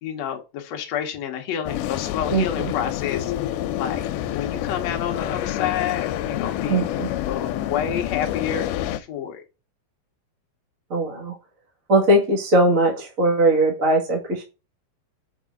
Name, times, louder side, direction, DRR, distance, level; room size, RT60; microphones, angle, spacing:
voice 1, 0.0-4.0 4.3-6.9 7.2-9.4, left 9 dB, 70° left, 1.6 m, -29 dB
sound 1, 1.6-9.0, left 12 dB, 85° left, 2.4 m, -28 dB
voice 2, 2.3-2.7 6.7-7.1 10.9-11.3 11.9-14.4, right 1 dB, 35° right, 1.3 m, -20 dB
6.6 x 4.8 x 3.6 m
omnidirectional pair, 4.4 m